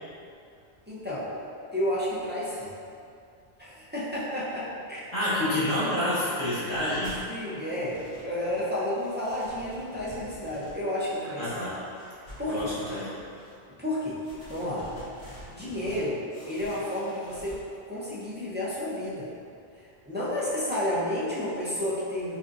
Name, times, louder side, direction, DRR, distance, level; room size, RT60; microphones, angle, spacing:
voice 1, 0.9-1.3 1.7-2.7 3.6-5.1 7.3-11.6 12.2-12.7 13.8-14.2 14.5-14.9 15.5-16.2 16.5-17.6 17.9-19.3 20.1-22.4, left 1 dB, 15° right, -9 dB, 0.4 m, -31 dB
voice 2, 5.1-7.2 11.4-11.7 12.5-13.2, left 1 dB, 30° left, -12 dB, 1.3 m, -28 dB
sound 1, 6.6-7.3 7.6-8.7 9.0-11.2 11.6-13.5 14.1-16.0 16.3-17.6, equal, 85° left, 1.7 m, -47 dB
5.1 x 2.5 x 2.6 m, 2.4 s
omnidirectional pair, 1.1 m